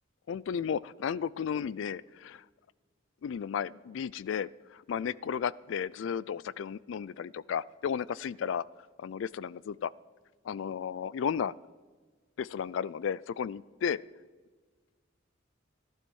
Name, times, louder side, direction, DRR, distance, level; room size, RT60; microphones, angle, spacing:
voice 1, 0.3-2.4 3.2-8.6 9.0-9.9 10.4-11.5 12.4-14.0, left 7 dB, 75° left, 22 dB, 0.3 m, -34 dB
14.5 x 12.0 x 4.7 m, 1.4 s
head